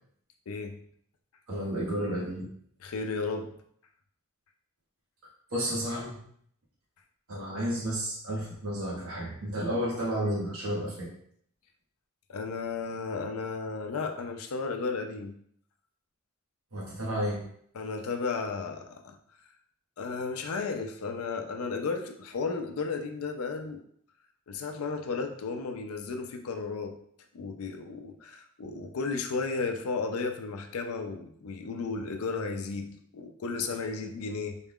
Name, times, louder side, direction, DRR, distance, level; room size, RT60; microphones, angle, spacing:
voice 1, 0.5-0.8 2.8-3.5 12.3-15.4 17.7-19.2 20.0-23.8 24.5-27.0 27.3-34.6, left 4 dB, 80° left, 5 dB, 0.5 m, -34 dB
voice 2, 1.5-2.5 5.2-6.2 7.3-11.1 16.7-17.4, equal, 75° right, -4 dB, 1.4 m, -32 dB
3.9 x 2.3 x 3.6 m, 0.65 s
head